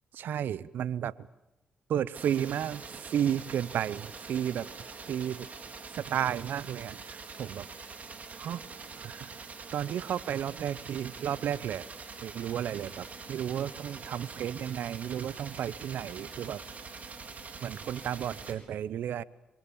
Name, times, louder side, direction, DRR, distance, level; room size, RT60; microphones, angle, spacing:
voice 1, 0.1-1.1 1.9-4.7 5.0-5.5 5.9-7.7 8.4-8.6 9.0-9.3 9.7-11.9 12.2-16.6 17.6-19.2, right 10 dB, 70° right, 19 dB, 0.8 m, -33 dB
sound 1, 2.1-18.5, right 4 dB, 50° right, 4.1 m, -44 dB
26.0 x 24.0 x 7.2 m, 0.91 s
supercardioid pair, 50°, 3 cm